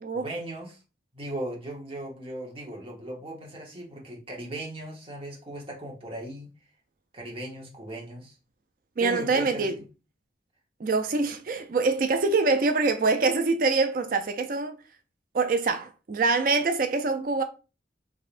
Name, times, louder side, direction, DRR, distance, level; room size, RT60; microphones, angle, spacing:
voice 1, 0.1-0.8 1.1-6.5 7.1-8.3 9.0-9.8, right 1 dB, 30° right, 1.0 m, -38 dB
voice 2, 9.0-9.7 10.8-14.8 15.3-17.4, right 3 dB, 45° right, 0.4 m, -24 dB
3.6 x 3.3 x 2.5 m
head